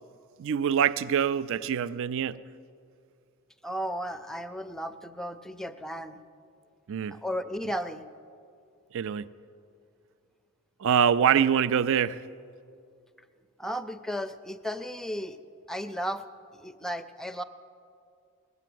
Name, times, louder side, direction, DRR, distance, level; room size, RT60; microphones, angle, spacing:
voice 1, 0.4-2.4 6.9-7.1 8.9-9.3 10.8-12.2, right 8 dB, 65° right, 16 dB, 0.4 m, -24 dB
voice 2, 3.6-6.2 7.1-8.1 13.6-15.4 15.7-16.2 16.5-17.4, equal, ahead, 12 dB, 0.5 m, -34 dB
20.0 x 8.3 x 7.7 m, 2.4 s
head